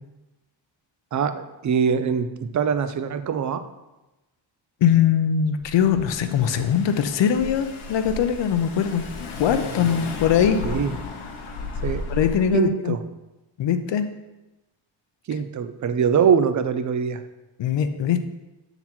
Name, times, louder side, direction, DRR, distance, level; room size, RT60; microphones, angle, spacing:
voice 1, 1.1-3.6 9.7-10.0 10.6-10.9 11.8-12.0 12.5-13.0 15.3-17.2, right 7 dB, 40° right, 11 dB, 0.5 m, -23 dB
voice 2, 4.8-9.1 9.4-10.6 12.1-13.0 13.6-14.1 17.6-18.2, left 8 dB, 65° left, 9 dB, 0.7 m, -21 dB
Car / Engine, 5.6-12.5, left 4 dB, 85° left, 1.0 m, -34 dB
7.2 x 4.0 x 4.3 m, 1.0 s
cardioid pair, 110°, 48 cm